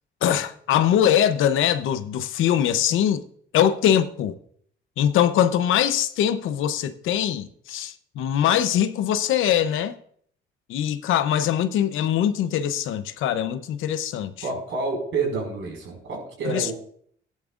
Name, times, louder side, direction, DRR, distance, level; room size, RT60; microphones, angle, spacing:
voice 1, 0.2-3.2 3.5-4.4 5.0-10.0 10.7-14.3 16.4-16.7, left 10 dB, 85° left, 0.8 m, -22 dB
voice 2, 14.4-16.7, right 4 dB, 75° right, 5.2 m, -28 dB
15.5 x 10.5 x 2.5 m
cardioid pair, 90°, 20 cm